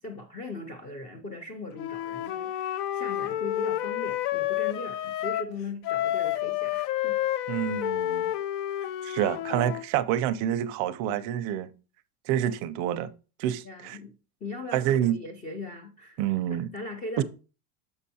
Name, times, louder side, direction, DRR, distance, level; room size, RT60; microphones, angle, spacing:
voice 1, 0.0-7.2 13.6-14.1 14.4-16.2 16.7-17.2, left 2 dB, 20° left, 0.3 m, -39 dB
Wind instrument woodwind instrument, 1.8-5.5 5.8-9.9, left 13 dB, 80° left, 0.6 m, -30 dB
voice 2, 7.5-8.3 9.0-11.7 12.3-13.1 13.4-14.0 14.7-15.2 16.2-16.7 17.2-17.3, right 11 dB, 40° right, 0.4 m, -27 dB
6.8 x 5.4 x 2.7 m
cardioid pair, 160°, 45 cm